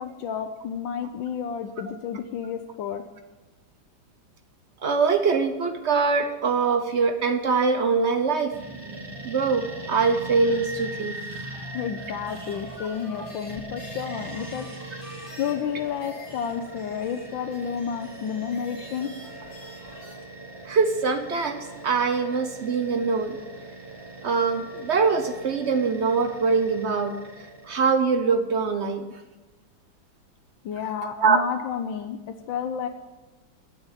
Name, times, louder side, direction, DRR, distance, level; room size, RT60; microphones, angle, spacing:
voice 1, 0.0-3.0 11.7-14.7 15.4-19.1 30.6-32.9, left 8 dB, 75° left, 5 dB, 1.4 m, -31 dB
voice 2, 4.8-8.5 9.2-11.2 20.6-23.4 24.2-27.1 27.7-29.1 31.2-31.4, right 5 dB, 55° right, 7 dB, 0.7 m, -23 dB
sound 1, 8.5-27.9, right 2 dB, 30° right, 0.4 m, -40 dB
sound 2, 12.2-20.1, left 1 dB, 25° left, 3.6 m, -47 dB
9.4 x 8.0 x 9.0 m, 1.1 s
omnidirectional pair, 2.2 m